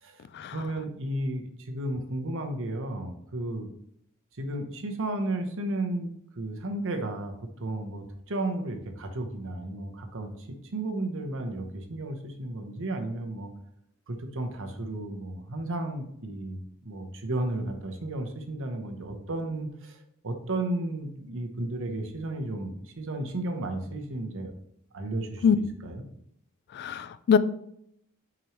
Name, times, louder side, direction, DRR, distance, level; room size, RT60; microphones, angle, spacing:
voice 1, 0.5-3.7 4.4-7.3 7.6-10.3 10.7-13.5 14.1-20.0 20.2-24.5 24.9-26.1, right 2 dB, 60° right, 5 dB, 0.9 m, -33 dB
voice 2, 26.8-27.4, left 7 dB, 50° left, 14 dB, 0.3 m, -22 dB
6.0 x 5.0 x 3.1 m, 0.71 s
head